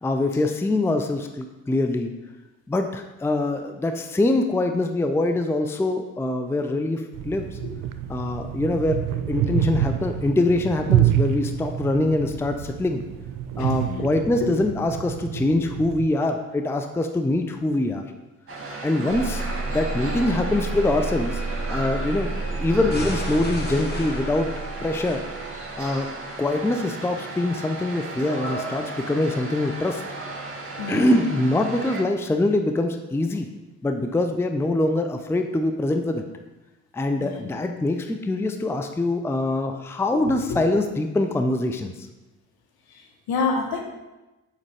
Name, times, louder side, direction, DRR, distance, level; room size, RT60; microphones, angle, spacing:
voice 1, 0.0-2.1 2.7-7.6 8.1-13.0 13.6-18.0 18.8-21.4 21.7-24.5 24.8-25.2 25.8-26.1 26.4-30.0 30.9-33.5 33.8-36.2 36.9-41.9, left 2 dB, 5° left, 6 dB, 0.5 m, -24 dB
sound 1, 7.1-16.1, right 11 dB, 50° right, 0.6 m, -27 dB
voice 2, 13.6-14.6 15.3-15.4 19.0-19.3 30.7-31.1 37.2-37.5 40.1-40.6 42.9-43.8, left 4 dB, 60° left, 2 dB, 1.2 m, -30 dB
sound 2, 18.5-32.0, right 2 dB, 30° right, 1.8 m, -35 dB
sound 3, 19.1-25.9, right 2 dB, 25° left, 1.7 m, -30 dB
7.3 x 5.2 x 3.4 m, 1.0 s
hypercardioid pair, 40°, 42 cm